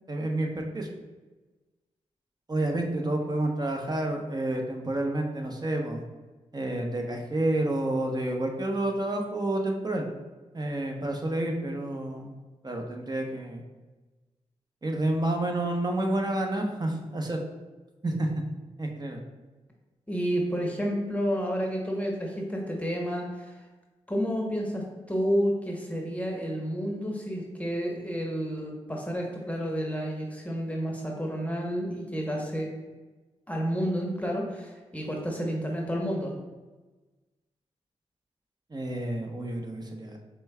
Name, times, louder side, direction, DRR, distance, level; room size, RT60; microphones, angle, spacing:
voice 1, 0.1-0.9 2.5-6.0 6.5-10.1 10.5-12.3 12.6-13.6 14.8-17.4 18.0-18.4 18.8-19.2 38.7-40.2, right 1 dB, 30° right, 2 dB, 0.8 m, -29 dB
voice 2, 20.1-23.6 24.1-32.7 33.5-36.3, equal, 10° left, -1 dB, 0.9 m, -30 dB
5.1 x 3.3 x 2.3 m, 1.2 s
cardioid pair, 45°, 13 cm